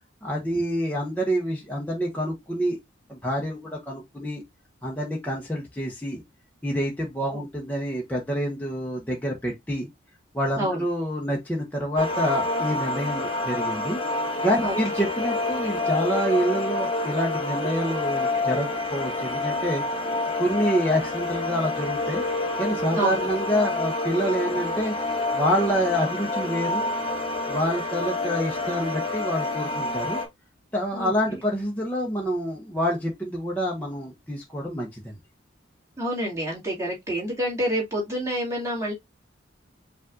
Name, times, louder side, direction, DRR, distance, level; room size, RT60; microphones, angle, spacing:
voice 1, 0.2-2.8 3.1-4.4 4.8-6.2 6.6-9.9 10.3-14.0 14.4-19.8 20.4-22.2 22.6-24.9 25.3-26.9 27.5-30.2 30.7-35.1, equal, 10° left, 0.9 m, -27 dB
sound 1, 12.0-30.3, left 2 dB, 25° left, 1.1 m, -28 dB
voice 2, 30.9-31.4 36.0-38.9, right 1 dB, 15° right, 2.2 m, -28 dB
5.2 x 2.6 x 3.7 m
head